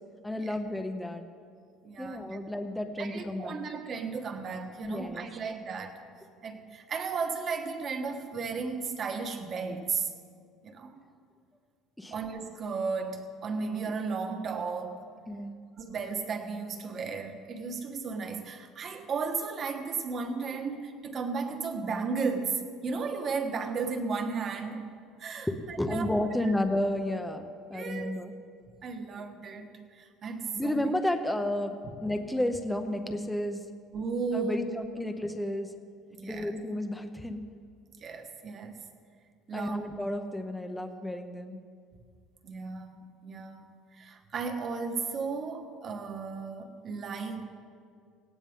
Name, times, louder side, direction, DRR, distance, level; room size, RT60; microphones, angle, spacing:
voice 1, 0.2-1.2 2.0-3.6 4.8-5.3 12.0-12.1 15.3-15.6 25.5-28.3 30.5-33.6 34.3-35.7 36.2-37.4 39.5-41.6, left 1 dB, 5° left, 6 dB, 0.7 m, -32 dB
voice 2, 1.8-2.4 3.0-6.0 6.4-10.1 10.6-11.0 12.1-15.1 15.8-24.9 25.2-26.1 26.4-26.5 27.7-28.2 28.8-30.8 32.1-32.2 33.1-33.2 33.9-34.7 36.1-36.5 38.0-38.8 39.5-39.8 42.4-43.6 44.0-47.4, right 5 dB, 30° right, 6 dB, 1.4 m, -34 dB
18.5 x 17.0 x 3.7 m, 2.2 s
cardioid pair, 160°, 0 cm